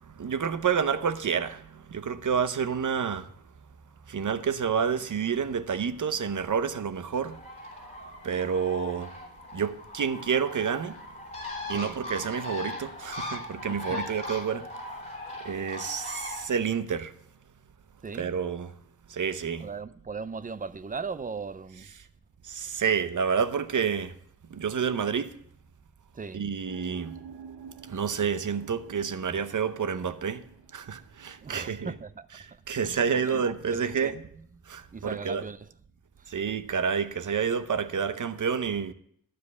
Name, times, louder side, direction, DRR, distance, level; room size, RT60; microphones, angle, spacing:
voice 1, 0.0-3.3 4.1-7.4 7.7-9.1 9.5-11.0 11.7-14.7 15.4-17.1 18.2-18.7 19.1-19.7 22.4-24.1 24.5-25.4 26.3-27.1 27.9-30.4 30.7-31.9 32.7-34.2 34.7-35.4 36.3-38.9, right 6 dB, 60° right, 0.8 m, -29 dB
Bird, 7.2-16.5, left 2 dB, 20° left, 3.0 m, -39 dB
voice 2, 13.7-14.2 18.0-18.3 19.6-21.9 26.1-26.5 31.4-33.4 33.7-34.5 34.9-35.7 36.2-36.4, right 5 dB, 25° right, 0.4 m, -39 dB
sound 1, 26.7-32.0, right 6 dB, 90° right, 0.8 m, -48 dB
12.0 x 5.2 x 8.1 m
wide cardioid pair, 110°, 36 cm